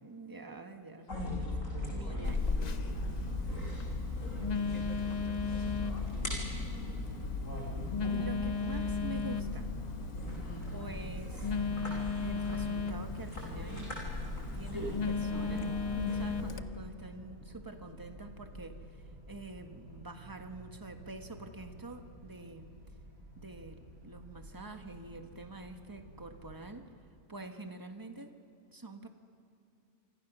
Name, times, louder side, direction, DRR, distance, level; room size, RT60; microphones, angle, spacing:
voice 1, 0.0-1.1 1.9-2.4 8.1-9.7 10.7-13.9 14.5-22.7 23.4-26.9 27.3-28.4 28.7-29.1, right 2 dB, 15° right, 5 dB, 1.4 m, -46 dB
voice 2, 1.0-1.5 2.0-2.9 4.2-6.8 10.4-10.9, left 1 dB, 75° left, 0 dB, 5.0 m, -52 dB
sound 1, 1.1-16.5, left 2 dB, 60° left, 6.3 m, -38 dB
Telephone, 2.2-16.6, left 5 dB, 40° left, 0.6 m, -37 dB
sound 2, 13.3-26.7, right 1 dB, 75° right, 5.7 m, -53 dB
27.5 x 26.0 x 6.1 m, 2.5 s
omnidirectional pair, 1.6 m